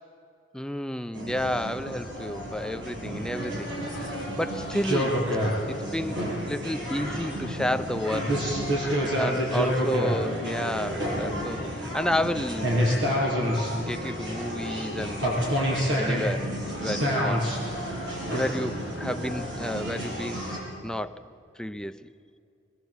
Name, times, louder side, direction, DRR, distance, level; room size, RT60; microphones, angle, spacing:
voice 1, 0.5-5.2 5.7-8.4 9.2-13.4 13.8-15.2 16.0-16.5 16.8-17.4 18.3-20.4 20.8-21.2 21.6-22.1, left 1 dB, 5° left, 0.5 m, -31 dB
sound 1, 1.1-20.6, equal, 70° right, 6.9 m, -29 dB
23.5 x 21.0 x 8.2 m
head